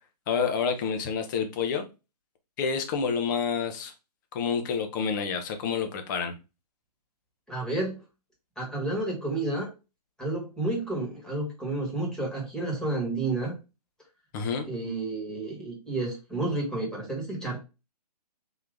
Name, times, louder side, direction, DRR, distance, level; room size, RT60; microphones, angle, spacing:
voice 1, 0.3-1.8 2.6-3.9 4.3-6.3 14.3-14.7, left 6 dB, 30° left, 0.8 m, -28 dB
voice 2, 7.5-8.0 8.6-9.7 10.2-13.5 14.7-17.6, right 2 dB, 5° left, 1.4 m, -30 dB
3.9 x 2.7 x 3.4 m
figure-of-eight pair, 135°, 21 cm